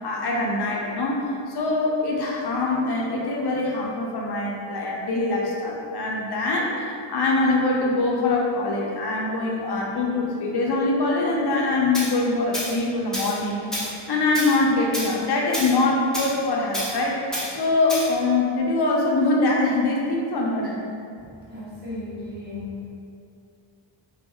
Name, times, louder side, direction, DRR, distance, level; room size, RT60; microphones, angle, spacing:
voice 1, 0.0-13.8 14.1-17.2 17.5-20.8, left 2 dB, 55° left, -2 dB, 0.5 m, -23 dB
Tools, 11.9-12.1 12.5-12.7 13.1-13.4 13.7-13.9 14.3-14.6 14.9-15.1 15.5-15.7 16.1-16.3 16.7-16.9 17.3-17.5 17.9-18.1, equal, ahead, 0.4 m, -29 dB
voice 2, 21.4-22.9, left 2 dB, 20° right, -10 dB, 0.8 m, -35 dB
2.2 x 2.0 x 2.8 m, 2.5 s
wide cardioid pair, 120°, 49 cm